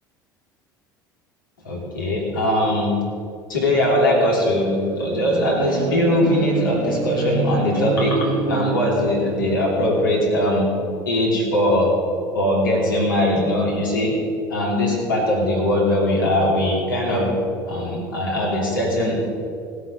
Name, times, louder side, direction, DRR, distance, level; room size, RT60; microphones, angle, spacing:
voice 1, 1.6-3.0 3.5-10.7 11.0-12.0 12.3-14.2 14.5-17.4 17.7-19.2, left 1 dB, 80° left, -2 dB, 3.0 m, -20 dB
sound 1, 4.6-9.6, right 5 dB, 45° right, 2.1 m, -29 dB
17.0 x 8.4 x 5.5 m, 2.6 s
figure-of-eight pair, 65°, 11 cm